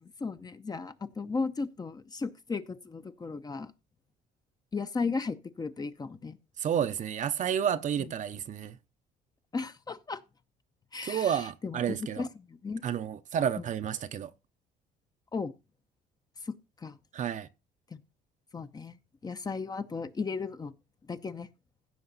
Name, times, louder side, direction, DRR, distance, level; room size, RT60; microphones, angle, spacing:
voice 1, 0.0-3.7 4.7-6.4 8.0-8.1 9.5-10.2 10.9-12.8 13.6-13.7 15.3-15.5 16.4-16.5 16.8-17.0 17.9-18.0 18.5-19.0 19.2-20.7 21.1-21.5, left 4 dB, 25° left, 0.8 m, -35 dB
voice 2, 6.6-8.8 11.0-12.2 12.8-14.3 17.1-17.5, right 9 dB, 45° right, 0.8 m, -30 dB
15.5 x 5.8 x 4.1 m
cardioid pair, 110°, 17 cm